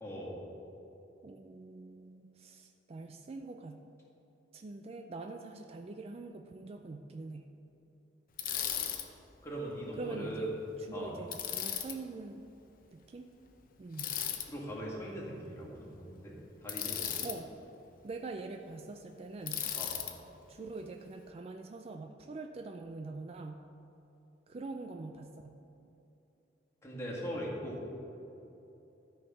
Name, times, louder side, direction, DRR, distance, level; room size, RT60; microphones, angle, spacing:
voice 1, 0.0-0.3 9.4-10.5 10.9-11.1 14.4-16.4 16.6-17.3 19.8-19.9 26.8-27.8, right 1 dB, 15° left, -6 dB, 2.0 m, -40 dB
voice 2, 1.2-3.8 4.5-7.5 9.9-12.4 12.9-13.3 13.8-14.2 17.2-17.5 18.0-19.6 20.5-23.7 24.5-25.6, right 3 dB, 35° right, 5 dB, 0.4 m, -44 dB
Bicycle, 8.4-9.0 11.3-11.9 14.0-14.5 16.7-17.4 19.5-20.1, left 9 dB, 50° left, 0.7 m, -36 dB
12.5 x 4.5 x 5.5 m, 2.9 s
head